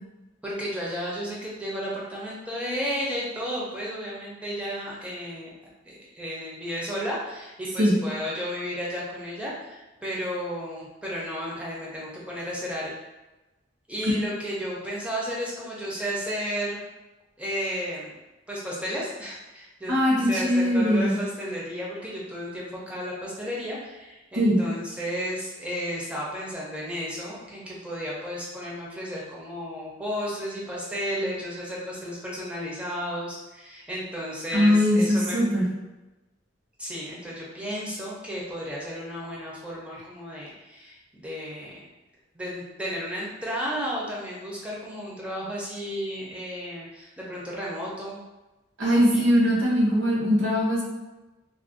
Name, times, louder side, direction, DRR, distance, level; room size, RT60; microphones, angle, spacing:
voice 1, 0.4-5.5 5.8-12.9 13.9-16.8 17.4-18.1 18.5-20.0 20.3-35.4 36.8-41.8 42.3-48.2 48.9-49.2, equal, 5° right, -5 dB, 0.4 m, -33 dB
voice 2, 19.9-21.1 24.4-24.6 34.5-35.6 48.8-50.8, equal, 70° right, -4 dB, 0.7 m, -21 dB
2.4 x 2.1 x 2.4 m, 1.1 s
head